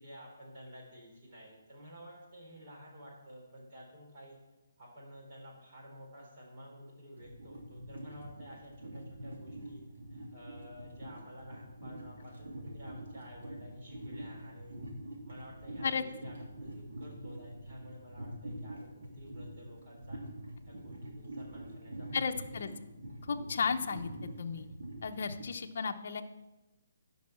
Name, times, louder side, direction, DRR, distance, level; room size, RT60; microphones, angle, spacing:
voice 1, 0.0-4.4 4.8-9.8 10.1-14.8 15.2-20.2 20.6-22.4, equal, 40° right, -3 dB, 4.4 m, -52 dB
sound 1, 7.2-25.4, right 1 dB, 70° right, 3.2 m, -45 dB
voice 2, 22.1-22.7 23.2-24.1 24.4-24.7 25.0-26.2, left 5 dB, 55° left, 5 dB, 0.7 m, -34 dB
11.0 x 5.5 x 7.3 m, 1.0 s
hypercardioid pair, 170°, 0 cm